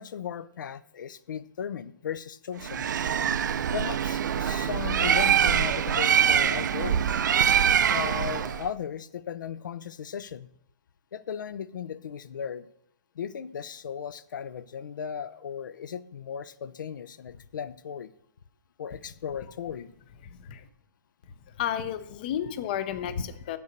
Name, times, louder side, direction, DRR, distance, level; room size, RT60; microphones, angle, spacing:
voice 1, 0.0-2.9 3.7-7.0 7.9-10.5 11.1-12.7 13.2-18.1 18.8-19.9, left 8 dB, 85° left, 17 dB, 0.6 m, -36 dB
Bird, 2.6-8.7, right 8 dB, 70° right, 0.6 m, -24 dB
voice 2, 21.6-23.6, left 9 dB, 30° left, 13 dB, 0.5 m, -31 dB
8.1 x 6.9 x 6.5 m, 0.72 s
hypercardioid pair, 175°, 10 cm